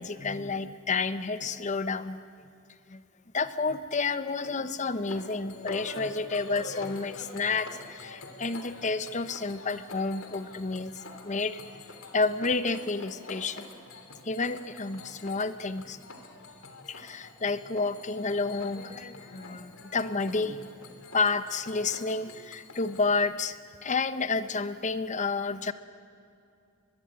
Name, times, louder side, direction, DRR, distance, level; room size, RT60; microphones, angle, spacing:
voice 1, 0.0-2.2 2.9-3.0 3.3-10.9 11.2-11.6 12.1-13.7 14.2-16.0 16.9-20.7 21.1-23.6 23.8-25.7, left 4 dB, 35° left, 12 dB, 0.8 m, -30 dB
sound 1, 5.0-23.2, left 2 dB, 80° left, 3.0 m, -46 dB
23.0 x 22.0 x 8.9 m, 2.5 s
head